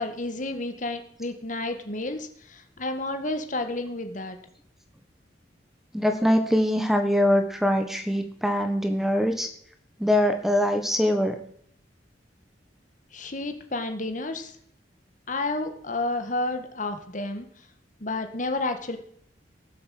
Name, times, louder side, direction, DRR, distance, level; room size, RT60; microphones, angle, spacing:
voice 1, 0.0-4.4 13.1-14.5 15.3-17.5 18.0-19.0, left 2 dB, 45° left, 7 dB, 1.7 m, -31 dB
voice 2, 5.9-9.5 10.0-11.4, equal, ahead, 6 dB, 1.2 m, -23 dB
17.5 x 7.8 x 7.7 m, 0.65 s
head